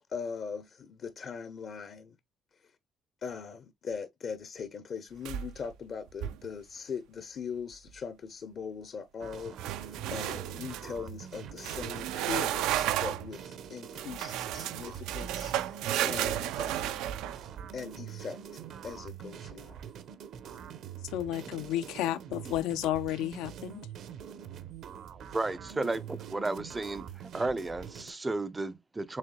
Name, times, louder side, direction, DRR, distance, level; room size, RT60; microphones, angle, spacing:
voice 1, 0.1-2.1 3.2-17.1 17.7-19.8, left 6 dB, 40° left, 0.7 m, -41 dB
sound 1, 5.2-5.7 6.1-6.5 9.6-10.9 11.6-13.3 14.0-17.8, right 12 dB, 80° right, 0.5 m, -33 dB
sound 2, 9.2-28.1, right 8 dB, 55° right, 0.7 m, -45 dB
voice 2, 21.0-23.8, left 13 dB, 85° left, 0.7 m, -32 dB
voice 3, 25.3-27.1 27.3-29.2, right 2 dB, 15° right, 0.5 m, -33 dB
6.4 x 3.5 x 2.2 m
cardioid pair, 155°, 0 cm